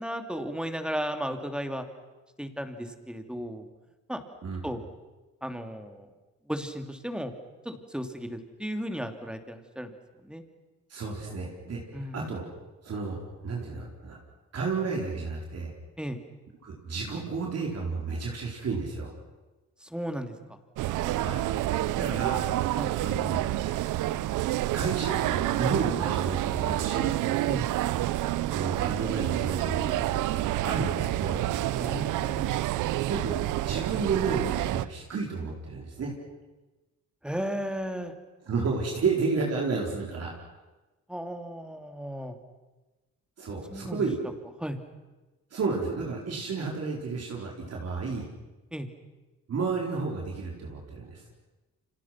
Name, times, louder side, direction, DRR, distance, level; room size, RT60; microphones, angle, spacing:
voice 1, 0.0-1.8 2.4-3.7 4.1-4.2 4.6-4.8 5.4-6.1 6.5-7.3 7.6-9.9 10.2-10.4 11.9-12.2 16.0-16.2 19.8-20.3 22.8-22.9 27.5-27.6 31.7-32.6 37.2-38.1 41.1-42.4 43.7-44.0 44.6-44.8 48.7-48.9, equal, 5° right, 6 dB, 3.0 m, -34 dB
voice 2, 10.9-12.5 12.8-14.2 14.5-15.7 16.6-19.1 21.2-21.4 21.9-22.4 23.0-23.5 24.7-27.1 28.4-31.4 33.0-33.4 33.6-36.1 38.4-40.3 43.4-44.2 45.5-48.3 49.5-51.2, right 4 dB, 55° right, -1 dB, 4.7 m, -32 dB
sound 1, 20.8-34.8, right 14 dB, 85° right, 0.8 m, -28 dB
29.5 x 26.0 x 6.1 m, 1.1 s
cardioid pair, 90°, 30 cm